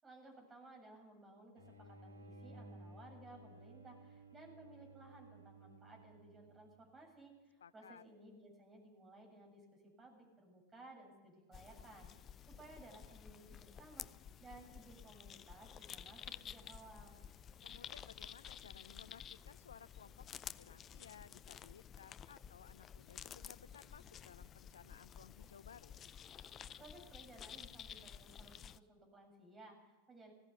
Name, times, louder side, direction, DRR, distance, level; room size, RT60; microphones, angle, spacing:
voice 1, 0.0-14.1 14.4-17.2 26.8-30.3, right 2 dB, 15° right, 1 dB, 7.3 m, -58 dB
sound 1, 1.6-6.9, right 1 dB, 90° left, 2.7 m, -57 dB
voice 2, 7.6-8.0 17.6-26.0, left 7 dB, 65° left, 18 dB, 0.6 m, -59 dB
sound 2, 11.5-28.8, left 8 dB, 25° left, 0.6 m, -52 dB
19.5 x 17.0 x 8.2 m, 1.2 s
figure-of-eight pair, 90°, 0 cm